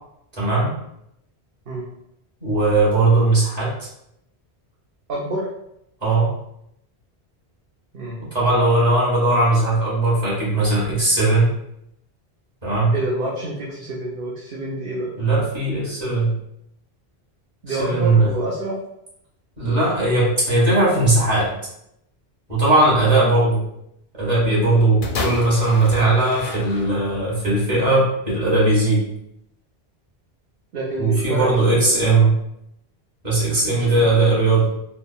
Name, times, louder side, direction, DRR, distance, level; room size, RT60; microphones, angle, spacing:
voice 1, 0.4-0.7 2.4-3.7 6.0-6.3 8.2-11.5 12.6-12.9 15.2-16.3 17.7-18.3 19.6-21.5 22.5-23.6 24.1-29.0 31.0-32.3 33.2-34.7, right 2 dB, 40° right, -7 dB, 1.3 m, -18 dB
voice 2, 5.1-5.4 7.9-8.2 12.9-15.1 17.6-18.8 30.7-32.2 33.7-34.1, right 2 dB, 65° right, -5 dB, 0.8 m, -28 dB
sound 1, 25.0-27.3 28.1-28.2, left 3 dB, 60° left, 0.6 m, -30 dB
3.3 x 2.1 x 2.3 m, 0.78 s
omnidirectional pair, 1.1 m